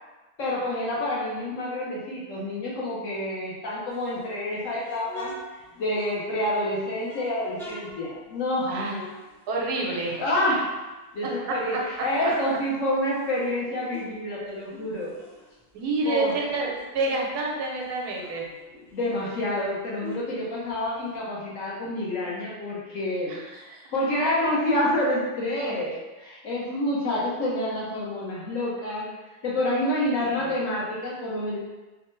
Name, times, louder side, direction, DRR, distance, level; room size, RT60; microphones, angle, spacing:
voice 1, 0.4-5.3 5.8-8.7 10.2-10.7 11.1-15.1 16.0-16.3 18.9-23.4 23.9-29.1 29.4-31.6, left 1 dB, 65° left, -5 dB, 1.0 m, -28 dB
sound 1, 3.9-6.6 7.0-9.9 10.2-11.5 11.9-14.2 14.5-17.0 17.4-17.5 17.7-21.2, right 1 dB, 5° left, 0.4 m, -46 dB
voice 2, 8.7-9.0 9.5-10.2 15.7-18.5 23.3-23.8 30.1-30.5, right 3 dB, 80° right, -2 dB, 1.2 m, -28 dB
3.2 x 2.1 x 3.0 m, 1.1 s
omnidirectional pair, 1.7 m